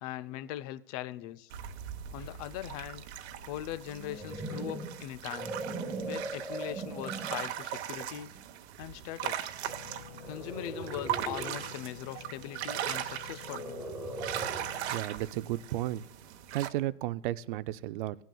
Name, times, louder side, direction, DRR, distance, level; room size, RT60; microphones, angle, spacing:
voice 1, 0.0-1.5 2.1-3.0 3.5-5.6 6.1-8.3 8.8-9.6 10.3-13.9, left 13 dB, 35° left, 15 dB, 0.4 m, -40 dB
sound 1, 1.5-16.7, right 11 dB, 65° right, 1.0 m, -39 dB
sound 2, 3.9-7.5 8.1-8.4 10.2-11.7 13.4-14.9, right 2 dB, 5° right, 0.8 m, -39 dB
sound 3, 9.6-15.0, left 6 dB, 80° left, 1.3 m, -49 dB
voice 2, 14.9-16.0 16.5-18.2, right 15 dB, 45° right, 16 dB, 0.4 m, -33 dB
18.0 x 9.2 x 2.3 m, 0.75 s
hypercardioid pair, 130°, 36 cm